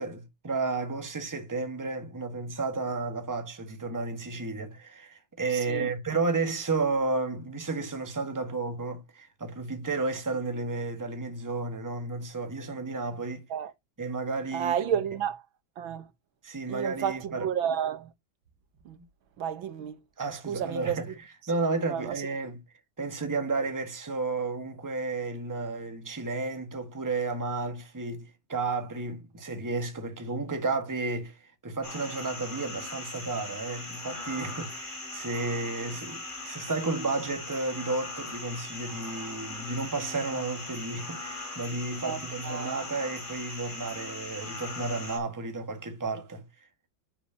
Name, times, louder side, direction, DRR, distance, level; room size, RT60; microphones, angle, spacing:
voice 1, 0.0-13.5 14.0-14.7 16.4-17.5 18.9-19.0 20.2-21.1 21.5-22.6 23.0-46.5, right 3 dB, 10° right, 1.3 m, -32 dB
voice 2, 5.5-5.9 13.5-13.7 14.5-15.4 15.8-16.1 16.7-18.1 18.9-19.0 19.4-20.0 20.4-21.0 21.9-22.2 42.0-42.8, right 9 dB, 90° right, 2.0 m, -31 dB
sound 1, 31.8-45.2, left 2 dB, 25° left, 2.9 m, -40 dB
9.6 x 7.1 x 2.9 m
omnidirectional pair, 2.1 m